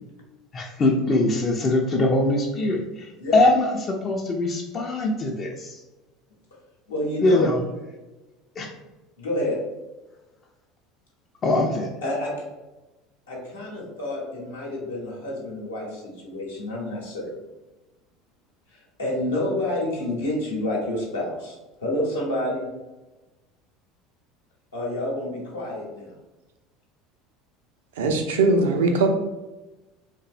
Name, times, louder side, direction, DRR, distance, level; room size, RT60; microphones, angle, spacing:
voice 1, 0.5-5.8 7.2-7.6 8.6-8.7 11.4-11.9, left 2 dB, 35° left, 0.3 m, -22 dB
voice 2, 6.9-7.5 9.2-9.6 12.0-12.3 13.3-17.3 18.7-22.7 24.7-26.1, left 1 dB, 80° left, 0.7 m, -29 dB
voice 3, 28.0-29.1, right 3 dB, 70° right, 0.3 m, -20 dB
2.5 x 2.0 x 2.4 m
figure-of-eight pair, 70°, 0 cm